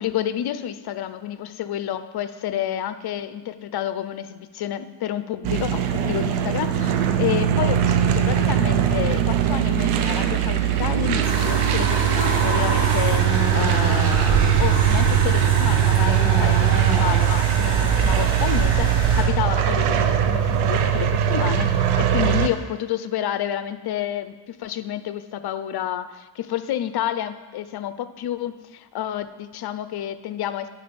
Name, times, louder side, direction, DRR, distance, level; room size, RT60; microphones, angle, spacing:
voice 1, 0.0-30.7, left 11 dB, 50° left, 12 dB, 0.6 m, -29 dB
sound 1, 5.4-22.5, right 10 dB, 90° right, 0.8 m, -20 dB
sound 2, 11.2-19.2, right 2 dB, 65° right, 3.1 m, -26 dB
10.5 x 4.6 x 5.2 m, 1.2 s
cardioid pair, 90°, 49 cm